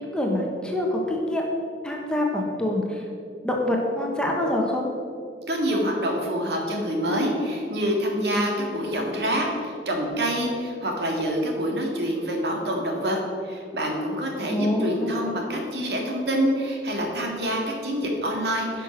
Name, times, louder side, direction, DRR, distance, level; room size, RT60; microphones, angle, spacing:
voice 1, 0.0-1.4 1.8-3.0 3.4-4.9 8.4-8.5 14.5-15.3, left 1 dB, 5° left, -1 dB, 1.2 m, -26 dB
voice 2, 5.5-13.2 13.4-18.8, equal, 65° right, 0 dB, 2.0 m, -26 dB
11.0 x 6.0 x 6.0 m, 2.3 s
head